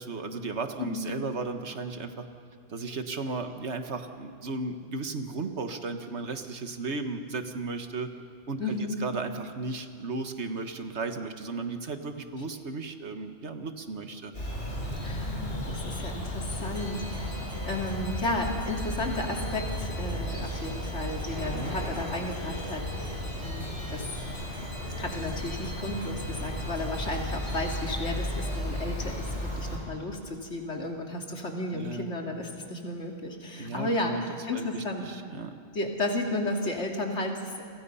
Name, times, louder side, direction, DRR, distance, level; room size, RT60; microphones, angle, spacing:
voice 1, 0.0-2.3 2.7-8.1 8.5-8.7 9.0-14.3 21.4-21.7 31.7-32.1 33.6-35.5, right 3 dB, 75° right, 7 dB, 1.7 m, -35 dB
voice 2, 8.6-9.0 15.0-17.4 17.7-24.1 25.0-35.1 35.7-37.7, left 2 dB, 90° left, 1 dB, 2.9 m, -33 dB
Bird vocalization bird call bird song, 14.3-29.8, equal, 60° left, 6.3 m, -34 dB
sound 1, 16.7-28.6, equal, 15° left, 5.0 m, -49 dB
29.5 x 23.5 x 5.6 m, 2.2 s
omnidirectional pair, 1.2 m